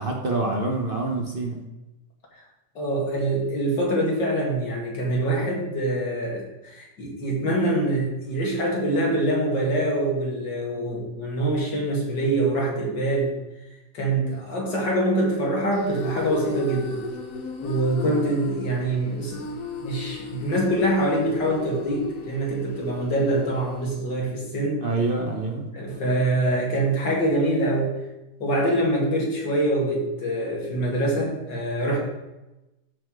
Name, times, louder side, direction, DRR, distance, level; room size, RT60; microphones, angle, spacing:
voice 1, 0.0-1.6 24.8-25.7, right 2 dB, 35° right, 0 dB, 1.0 m, -26 dB
voice 2, 2.8-13.4 13.9-17.0 17.6-19.4 19.8-24.8 25.7-27.9 28.4-32.0, right 1 dB, 75° left, -2 dB, 2.8 m, -24 dB
sound 1, 15.7-23.9, left 4 dB, 55° left, 1.2 m, -36 dB
12.0 x 4.4 x 4.7 m, 0.98 s
omnidirectional pair, 1.9 m